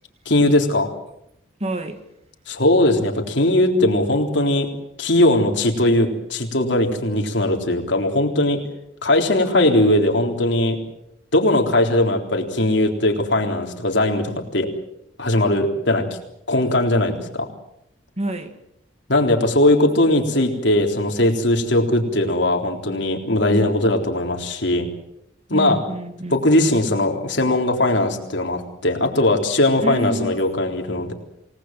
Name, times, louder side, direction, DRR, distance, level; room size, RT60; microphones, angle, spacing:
voice 1, 0.3-0.9 2.5-4.7 5.0-8.6 9.0-10.8 11.3-14.7 15.2-16.1 16.5-17.5 19.1-24.9 25.5-25.8 26.3-31.1, left 1 dB, 65° left, 3 dB, 3.8 m, -19 dB
voice 2, 1.6-2.0 18.2-18.6 23.5-23.6 25.5-26.4 29.8-30.4, right 1 dB, 35° right, 8 dB, 2.0 m, -28 dB
28.0 x 19.0 x 7.7 m, 0.80 s
head